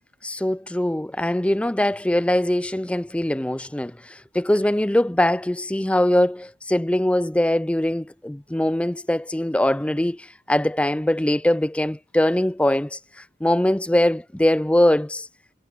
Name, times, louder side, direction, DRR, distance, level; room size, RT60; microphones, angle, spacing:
voice 1, 0.2-13.0 13.4-15.3, left 1 dB, 5° left, 0.4 m, -22 dB
head